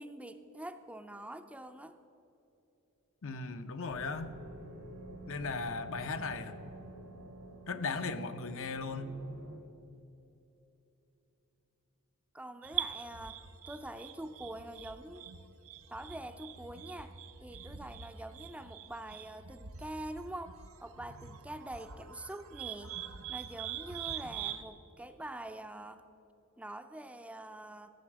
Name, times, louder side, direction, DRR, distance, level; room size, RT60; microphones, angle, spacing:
voice 1, 0.0-2.0 12.3-15.3 15.9-17.1 17.4-22.9 23.3-26.0 26.6-27.9, right 1 dB, 5° right, 8 dB, 0.4 m, -45 dB
voice 2, 3.2-4.3 5.3-6.5 7.7-9.2, left 4 dB, 65° left, 9 dB, 0.7 m, -37 dB
sound 1, 3.9-9.6, right 1 dB, 85° right, 1.5 m, -49 dB
sound 2, 12.6-24.6, right 9 dB, 70° right, 0.7 m, -44 dB
14.5 x 7.1 x 7.3 m, 2.9 s
head